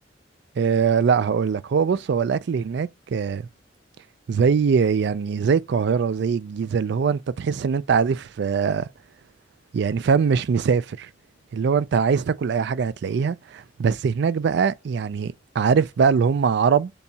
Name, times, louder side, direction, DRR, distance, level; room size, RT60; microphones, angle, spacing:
voice 1, 0.6-3.5 4.3-8.9 9.7-11.1 11.5-16.9, right 6 dB, 60° right, 0.3 m, -22 dB
6.8 x 2.3 x 2.7 m
head